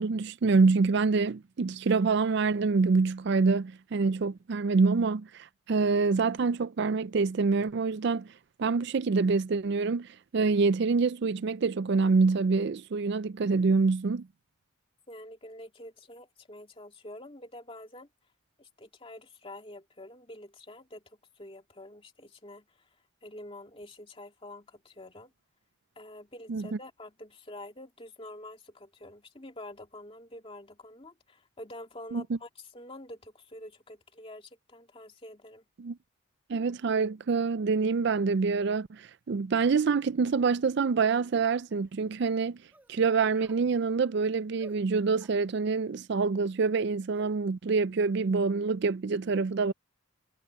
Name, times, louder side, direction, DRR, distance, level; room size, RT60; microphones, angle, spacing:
voice 1, 0.0-8.3 8.6-14.3 26.5-26.6 32.1-32.2 35.8-36.0 36.5-42.6 42.9-49.7, right 4 dB, 55° right, 0.4 m, -26 dB
voice 2, 15.1-18.1 18.6-22.9 23.2-25.3 26.0-35.6, left 1 dB, 25° left, 2.5 m, -47 dB
sound 1, 41.2-41.3 41.7-41.9 42.7-43.0 43.3-43.6 44.6-44.8 45.2-45.4 47.1-47.3, right 1 dB, 10° right, 2.4 m, -55 dB
head